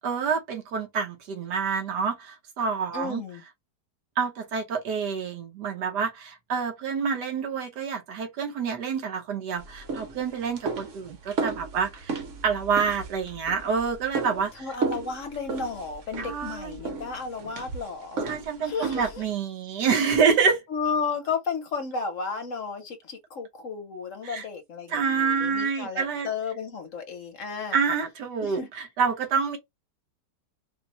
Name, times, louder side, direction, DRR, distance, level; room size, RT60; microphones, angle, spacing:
voice 1, 0.0-3.2 4.2-14.7 16.2-16.8 18.2-20.6 24.2-24.4 24.9-26.3 27.7-29.6, right 6 dB, 80° right, 1.7 m, -27 dB
voice 2, 2.9-3.4 14.5-18.2 18.6-19.2 20.7-27.8 28.4-28.7, left 5 dB, 55° left, 1.1 m, -33 dB
sound 1, 9.6-19.3, right 4 dB, 55° right, 1.1 m, -35 dB
4.3 x 2.1 x 4.1 m
omnidirectional pair, 1.8 m